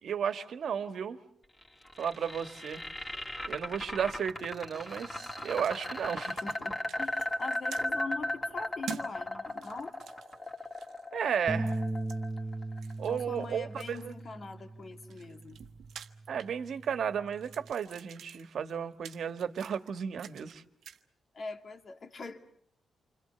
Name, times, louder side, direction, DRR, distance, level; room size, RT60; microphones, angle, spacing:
voice 1, 0.0-1.2 2.0-2.8 3.5-6.4 11.1-11.8 13.0-14.1 16.3-20.6, right 7 dB, 70° right, 9 dB, 1.6 m, -34 dB
sound 1, 1.6-13.7, left 1 dB, 20° left, 2.8 m, -36 dB
sound 2, 4.9-5.9 6.2-6.6 6.9-7.9 8.9-9.1 9.5-11.1 11.7-12.2 12.8-14.2 14.8-17.0 17.3-20.6 20.8-21.0, right 8 dB, 85° right, 1.3 m, -48 dB
voice 2, 6.3-10.0 13.1-15.6 21.3-22.4, left 4 dB, 45° left, 5 dB, 2.4 m, -42 dB
sound 3, 11.5-17.7, right 2 dB, 5° right, 1.2 m, -39 dB
29.0 x 25.5 x 6.9 m, 0.67 s
cardioid pair, 110°, 0 cm